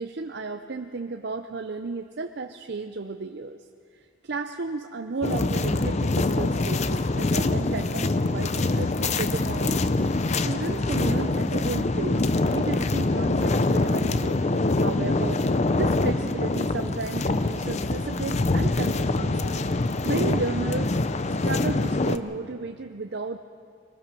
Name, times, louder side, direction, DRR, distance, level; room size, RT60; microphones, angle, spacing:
voice 1, 0.0-3.6 4.0-9.9 10.4-14.4 14.8-19.6 20.0-21.0 21.4-23.4, right 3 dB, 55° right, 6 dB, 0.6 m, -33 dB
sound 1, 5.2-22.2, left 2 dB, 35° left, 0.6 m, -24 dB
22.5 x 20.5 x 6.2 m, 2.4 s
head